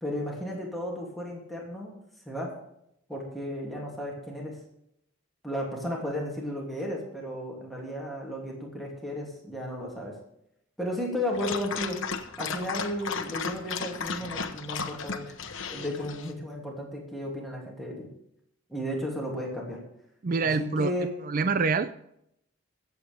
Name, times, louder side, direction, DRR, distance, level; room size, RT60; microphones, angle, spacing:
voice 1, 0.0-1.9 2.3-2.5 3.1-4.6 5.4-10.1 10.8-12.0 12.4-15.3 15.7-18.1 18.7-19.8 20.4-21.1, left 1 dB, ahead, -3 dB, 2.7 m, -34 dB
Dog, 11.3-16.3, left 5 dB, 70° left, 1.1 m, -35 dB
voice 2, 20.2-20.9 21.3-21.9, right 4 dB, 45° right, 12 dB, 0.4 m, -25 dB
22.5 x 8.2 x 3.5 m, 0.76 s
head